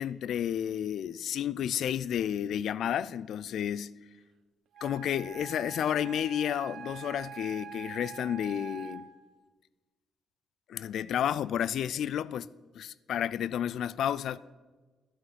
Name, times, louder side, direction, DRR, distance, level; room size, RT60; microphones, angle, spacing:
voice 1, 0.0-3.9 4.8-9.1 10.7-12.5 12.7-14.4, left 9 dB, 70° left, 0.3 m, -31 dB
Wind instrument woodwind instrument, 4.7-9.3, right 8 dB, 70° right, 0.9 m, -45 dB
12.5 x 5.7 x 8.0 m
cardioid pair, 90°, 0 cm